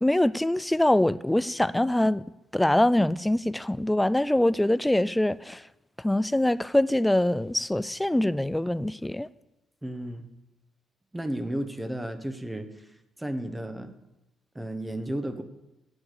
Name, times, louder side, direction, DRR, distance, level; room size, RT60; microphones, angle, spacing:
voice 1, 0.0-2.2 2.5-5.6 6.0-9.3, left 1 dB, 10° left, 0.4 m, -24 dB
voice 2, 9.8-10.2 11.1-12.9 13.2-13.9 14.5-15.4, right 1 dB, 10° right, 1.1 m, -33 dB
9.8 x 8.7 x 6.7 m
cardioid pair, 90°, 0 cm